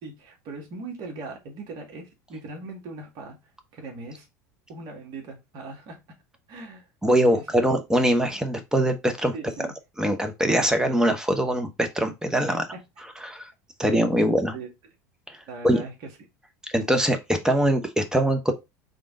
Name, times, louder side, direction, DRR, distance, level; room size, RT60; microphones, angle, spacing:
voice 1, 0.0-3.4 3.7-4.3 4.7-6.0 6.5-6.9 7.3-7.7 9.3-9.7 12.5-12.8 14.5-14.7 15.5-16.1, right 3 dB, 55° right, 1.9 m, -39 dB
voice 2, 7.0-9.3 10.0-12.6 13.2-13.5 13.8-14.5 15.3-15.4 15.6-15.8 16.7-18.5, right 1 dB, 5° right, 1.0 m, -22 dB
3.8 x 3.6 x 3.8 m
hypercardioid pair, 80°, 9 cm